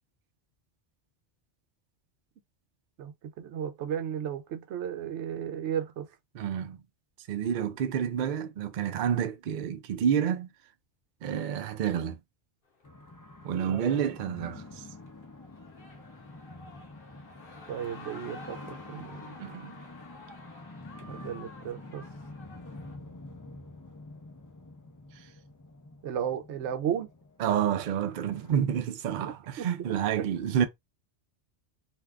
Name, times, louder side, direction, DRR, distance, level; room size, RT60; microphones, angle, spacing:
voice 1, 3.0-6.1 13.7-13.8 17.7-19.4 21.1-22.0 26.0-27.1 29.2-29.7, right 9 dB, 80° right, 0.9 m, -34 dB
voice 2, 6.3-6.8 7.3-10.5 11.2-12.2 13.4-14.8 19.4-19.7 27.4-30.7, right 8 dB, 60° right, 0.5 m, -29 dB
sound 1, 12.7-23.0, left 1 dB, 55° left, 1.0 m, -51 dB
sound 2, 12.8-28.5, left 2 dB, 30° left, 0.3 m, -48 dB
2.6 x 2.4 x 3.3 m
omnidirectional pair, 1.2 m